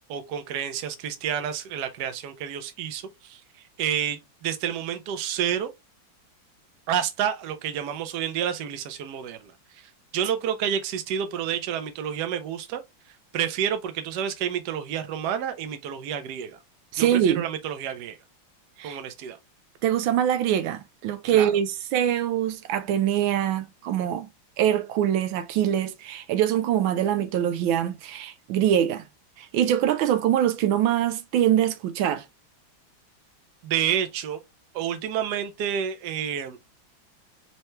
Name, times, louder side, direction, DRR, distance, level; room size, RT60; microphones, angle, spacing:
voice 1, 0.0-3.4 3.8-5.7 6.9-12.8 13.3-16.6 17.0-18.2 18.8-19.4 21.3-21.5 33.6-34.4 34.7-36.8, right 9 dB, 65° right, 1.2 m, -29 dB
voice 2, 16.9-17.4 18.8-19.0 19.8-24.3 24.6-29.0 29.4-32.2, right 10 dB, 85° right, 1.4 m, -24 dB
4.4 x 2.9 x 3.1 m
omnidirectional pair, 2.1 m